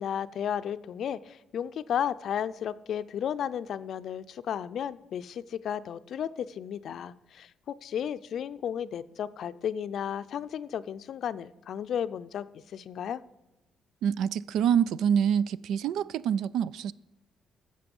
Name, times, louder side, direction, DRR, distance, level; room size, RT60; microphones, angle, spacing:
voice 1, 0.0-13.2, left 9 dB, 65° left, 0.5 m, -33 dB
voice 2, 14.0-16.9, right 8 dB, 80° right, 0.3 m, -26 dB
13.0 x 7.5 x 5.4 m
cardioid pair, 90°, 0 cm